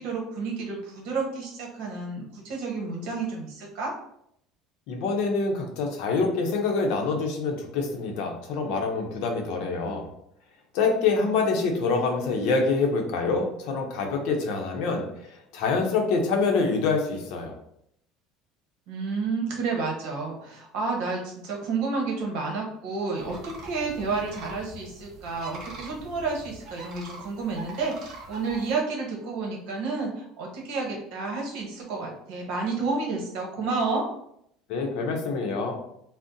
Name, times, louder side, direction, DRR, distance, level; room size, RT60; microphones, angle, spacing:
voice 1, 0.0-3.9 18.9-34.1, right 4 dB, 65° right, -1 dB, 0.9 m, -30 dB
voice 2, 4.9-10.1 10.7-17.5 34.7-35.8, left 4 dB, 60° left, 2 dB, 0.6 m, -26 dB
sound 1, 23.2-28.8, right 2 dB, 35° right, 0.6 m, -43 dB
2.6 x 2.0 x 3.7 m, 0.72 s
cardioid pair, 175°, 0 cm